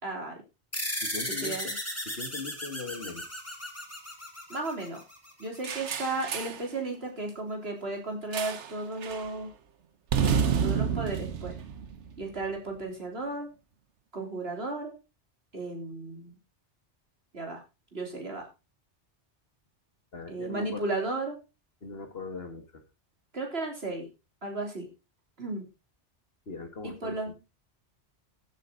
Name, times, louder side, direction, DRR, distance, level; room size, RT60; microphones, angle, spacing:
voice 1, 0.0-0.4 1.4-1.7 4.5-5.0 5.4-9.5 10.6-11.6 12.2-13.5 14.1-14.9 15.5-16.4 17.3-17.6 17.9-18.5 20.3-21.4 23.3-24.1 24.4-24.9 25.4-25.7 26.8-27.4, right 2 dB, 60° right, 1 dB, 3.9 m, -34 dB
sound 1, 0.7-5.6, left 1 dB, 15° left, 2.7 m, -36 dB
voice 2, 1.0-1.7 2.1-3.3 20.1-20.9 21.8-22.8 26.5-27.3, left 4 dB, 60° left, 7 dB, 2.2 m, -40 dB
sound 2, 5.6-6.7 8.3-8.8 9.0-9.3 10.1-12.4, right 7 dB, 80° right, 1.4 m, -29 dB
15.0 x 8.4 x 3.9 m, 0.29 s
omnidirectional pair, 1.2 m